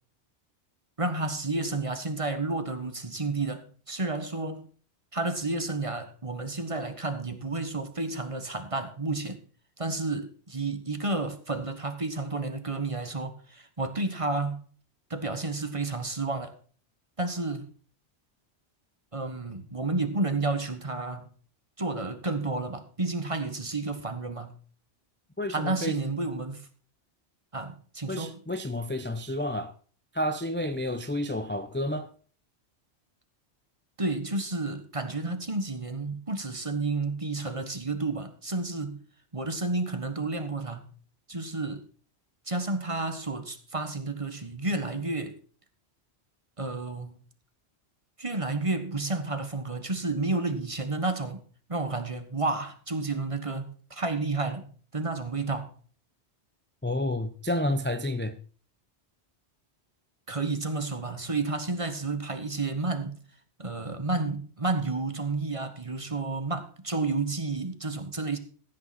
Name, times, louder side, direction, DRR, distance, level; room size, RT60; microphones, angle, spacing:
voice 1, 1.0-4.6 5.1-9.4 9.8-14.6 15.1-16.5 17.2-17.7 19.1-21.3 21.8-24.5 25.5-26.7 27.5-28.4 34.0-39.0 39.3-40.9 41.3-41.8 42.5-45.4 46.6-47.2 48.2-51.4 51.7-55.7 60.3-63.2 63.6-68.4, right 3 dB, 30° right, 1.4 m, -31 dB
voice 2, 25.4-26.0 28.1-29.7 30.1-32.1 56.8-58.4, left 1 dB, 15° left, 0.6 m, -30 dB
15.0 x 9.0 x 4.2 m
omnidirectional pair, 1.1 m